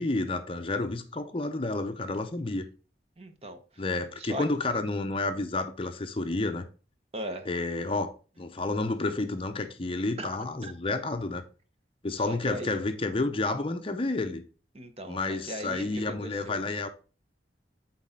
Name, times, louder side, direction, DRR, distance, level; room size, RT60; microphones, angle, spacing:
voice 1, 0.0-2.7 3.8-6.7 7.5-8.1 8.4-11.4 12.0-14.4 15.1-16.9, left 2 dB, 30° left, 0.6 m, -30 dB
voice 2, 3.2-3.8 4.2-4.4 7.1-7.5 10.2-10.4 10.6-10.7 12.2-12.8 14.7-16.6, right 1 dB, 35° right, 0.9 m, -38 dB
8.4 x 4.1 x 3.7 m
head